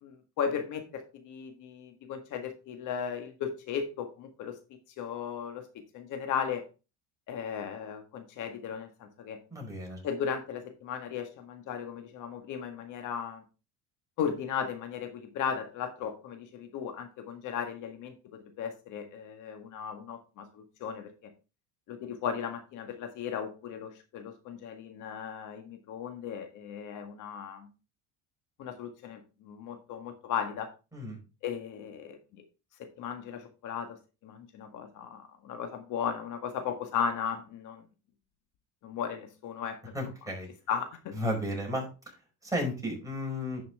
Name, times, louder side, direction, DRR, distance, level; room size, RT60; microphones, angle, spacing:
voice 1, 0.0-4.6 5.0-5.7 5.9-6.6 7.3-9.4 10.0-13.4 14.2-21.1 21.9-27.7 28.6-30.7 31.4-32.2 32.8-37.8 38.8-39.9 40.7-41.1, left 7 dB, 65° left, 6 dB, 1.8 m, -36 dB
voice 2, 9.5-10.0 30.9-31.2 39.9-40.5 41.2-41.9 42.4-43.6, equal, 10° right, 0 dB, 4.9 m, -33 dB
11.0 x 5.8 x 3.6 m, 0.31 s
supercardioid pair, 100°, 34 cm